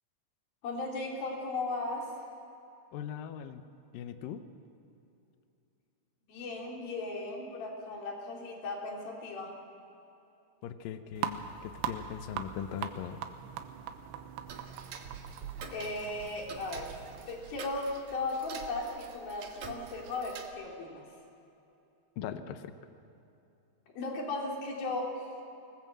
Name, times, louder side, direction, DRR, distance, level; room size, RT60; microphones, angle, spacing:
voice 1, 0.6-2.1 6.3-9.5 15.7-16.9 17.3-21.0 23.9-25.3, left 2 dB, 55° left, -1 dB, 4.9 m, -36 dB
voice 2, 2.9-3.6 3.9-4.4 10.6-13.2 22.2-22.7, left 9 dB, 85° left, 9 dB, 2.0 m, -40 dB
sound 1, 11.2-17.3, right 9 dB, 90° right, 3.4 m, -41 dB
Tick-tock, 14.5-20.5, right 6 dB, 60° right, 2.1 m, -46 dB
25.0 x 19.5 x 7.6 m, 2.8 s
omnidirectional pair, 5.3 m